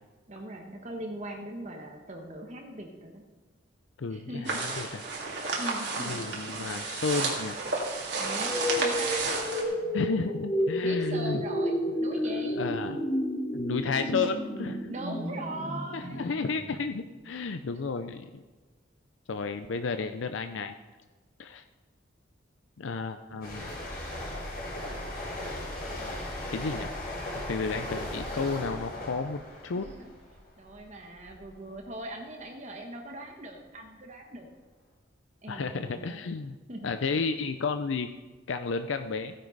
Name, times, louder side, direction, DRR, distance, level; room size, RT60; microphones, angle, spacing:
voice 1, 0.3-3.2 4.1-4.6 5.6-6.3 8.2-10.3 10.8-12.6 14.9-16.3 17.7-17.8 19.6-19.7 23.3-23.6 26.0-26.2 29.7-30.1 30.6-34.5 35.4-36.2 36.7-36.9, right 1 dB, 40° right, 2 dB, 1.2 m, -41 dB
voice 2, 4.0-5.0 6.0-7.5 9.9-11.4 11.9-13.0 13.5-14.8 15.9-18.4 19.3-20.7 21.4-21.6 22.8-23.7 26.5-26.9 27.5-29.9 35.5-36.6 36.8-38.1 38.5-39.3, left 4 dB, 85° left, 9 dB, 0.5 m, -32 dB
sound 1, 4.4-9.6, right 3 dB, 65° right, 2.4 m, -32 dB
sound 2, 8.2-17.1, equal, 30° left, 3.4 m, -31 dB
sound 3, 23.4-30.9 31.2-31.5, left 1 dB, 50° left, 4.3 m, -37 dB
15.5 x 9.9 x 4.0 m, 1.3 s
head